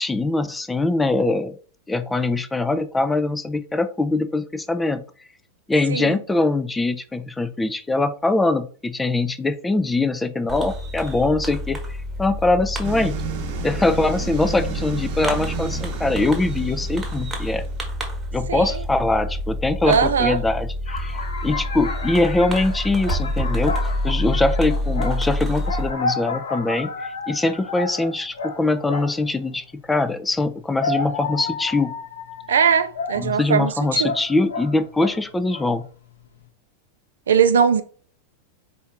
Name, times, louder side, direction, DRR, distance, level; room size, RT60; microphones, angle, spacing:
voice 1, 0.0-1.6 1.9-5.0 5.7-11.8 12.2-13.2 13.6-17.6 18.3-23.7 24.0-31.9 33.2-35.9, left 2 dB, 10° left, 0.3 m, -22 dB
voice 2, 5.9-6.2 18.5-18.8 19.9-20.4 32.5-33.7 34.0-34.1 37.3-37.8, right 7 dB, 65° right, 0.4 m, -19 dB
Fireworks, 10.5-25.9, left 1 dB, 10° right, 1.2 m, -28 dB
sound 1, 12.8-17.9, right 6 dB, 50° right, 0.8 m, -33 dB
sound 2, 20.9-29.3 30.4-35.2 35.5-35.9, left 3 dB, 65° left, 0.7 m, -31 dB
4.4 x 2.6 x 3.5 m
figure-of-eight pair, 90°, 0 cm